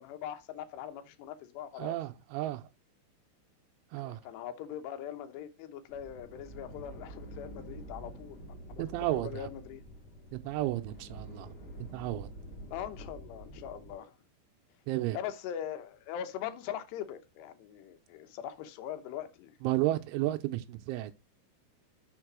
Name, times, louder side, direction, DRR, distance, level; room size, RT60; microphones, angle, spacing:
voice 1, 0.0-2.0 4.0-8.4 8.7-8.8 9.2-9.8 12.7-14.1 15.1-19.5, left 10 dB, 75° left, 2.7 m, -41 dB
voice 2, 1.8-2.6 3.9-4.2 8.8-9.5 10.3-11.5 11.9-12.3 14.9-15.2 19.6-21.1, right 16 dB, 85° right, 3.0 m, -32 dB
sound 1, 5.9-13.9, right 1 dB, 50° left, 0.9 m, -47 dB
6.7 x 5.5 x 6.1 m
omnidirectional pair, 5.7 m